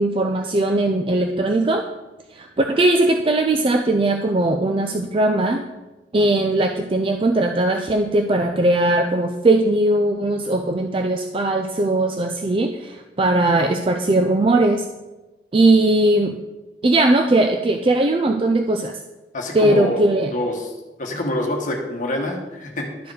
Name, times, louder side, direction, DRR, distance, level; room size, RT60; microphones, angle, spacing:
voice 1, 0.0-1.8 2.3-5.7 6.1-14.9 15.5-16.4 16.8-18.9 19.5-20.3 23.0-23.1, right 2 dB, 30° right, 5 dB, 0.4 m, -19 dB
voice 2, 19.3-20.0 20.3-20.7 21.0-22.9, left 1 dB, 45° left, 2 dB, 1.2 m, -26 dB
12.0 x 4.7 x 4.8 m, 1.1 s
head